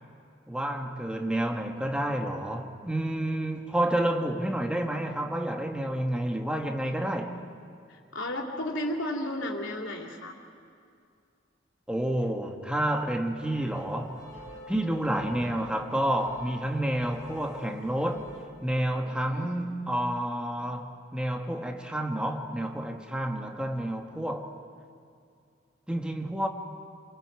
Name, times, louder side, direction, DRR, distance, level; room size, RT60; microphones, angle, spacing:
voice 1, 0.5-7.5 11.9-14.2 14.7-18.3 18.6-24.5 25.9-26.5, right 1 dB, 5° right, 1.2 m, -29 dB
voice 2, 8.1-10.3 19.0-19.6, left 1 dB, 85° left, 2.8 m, -33 dB
sound 1, 13.4-18.4, equal, 15° left, 6.6 m, -47 dB
28.0 x 23.5 x 4.7 m
head